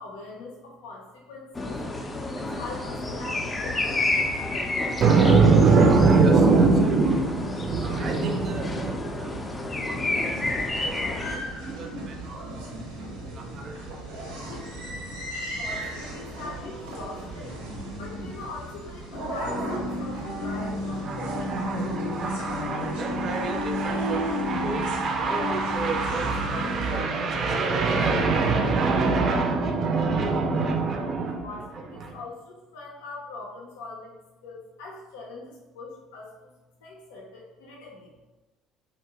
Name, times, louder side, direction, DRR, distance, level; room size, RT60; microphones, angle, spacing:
voice 1, 0.0-1.8 2.3-4.3 15.3-17.6 18.0-22.1 31.4-34.2 34.4-36.5 36.8-38.1, left 3 dB, 80° left, -2 dB, 0.5 m, -42 dB
sound 1, 1.5-11.4, left 2 dB, 25° left, 0.4 m, -30 dB
voice 2, 5.0-12.7 13.3-15.0 20.1-20.2 20.5-20.7 21.0-31.5 32.0-32.2, right 4 dB, 50° right, 4 dB, 0.4 m, -24 dB
sound 2, 10.4-27.0, equal, 85° right, 0.7 m, -33 dB
2.7 x 2.0 x 2.7 m, 1.1 s
hypercardioid pair, 60°, 0 cm